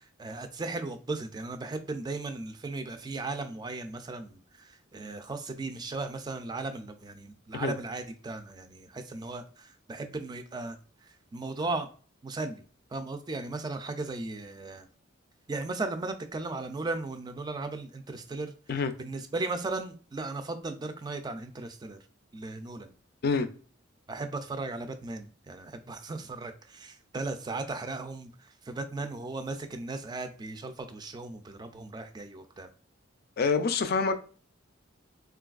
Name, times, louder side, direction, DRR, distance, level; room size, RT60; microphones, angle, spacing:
voice 1, 0.0-10.8 11.3-11.9 12.2-12.6 12.9-14.9 15.5-18.5 19.0-22.0 22.3-22.9 24.1-32.7, right 3 dB, 20° right, 0.3 m, -36 dB
voice 2, 33.4-34.3, left 4 dB, 50° left, 0.4 m, -26 dB
3.8 x 2.4 x 2.3 m
head